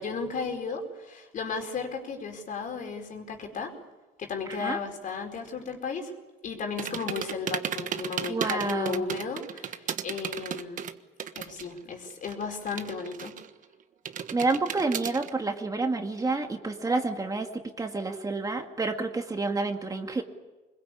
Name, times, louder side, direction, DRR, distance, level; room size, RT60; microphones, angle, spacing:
voice 1, 0.0-3.7 4.2-6.1 6.4-10.8 11.3-13.4, left 5 dB, 50° left, 3 dB, 4.8 m, -34 dB
sound 1, 6.8-11.8 12.0-13.6 14.1-15.3, right 8 dB, 50° right, 1.4 m, -35 dB
voice 2, 8.3-9.0 14.3-20.2, right 3 dB, 20° right, 4 dB, 2.1 m, -29 dB
25.0 x 21.5 x 8.6 m, 1.2 s
cardioid pair, 110°, 17 cm